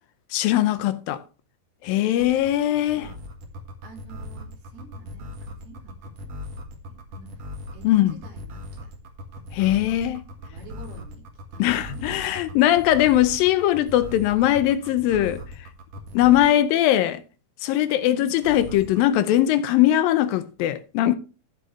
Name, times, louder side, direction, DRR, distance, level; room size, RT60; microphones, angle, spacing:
voice 1, 0.3-1.2 1.8-3.1 7.8-8.2 9.5-10.2 11.6-15.7 16.1-17.2 17.6-21.2, left 13 dB, 80° left, 2.3 m, -20 dB
sound 1, 2.2-16.6 18.4-19.0, left 1 dB, 50° right, 2.4 m, -38 dB
voice 2, 3.8-5.9 6.2-6.3 6.9-8.9 9.4-10.0 10.4-11.2 11.5-12.8 18.1-18.4, right 2 dB, 80° right, 5.3 m, -48 dB
14.0 x 8.0 x 3.1 m
omnidirectional pair, 4.3 m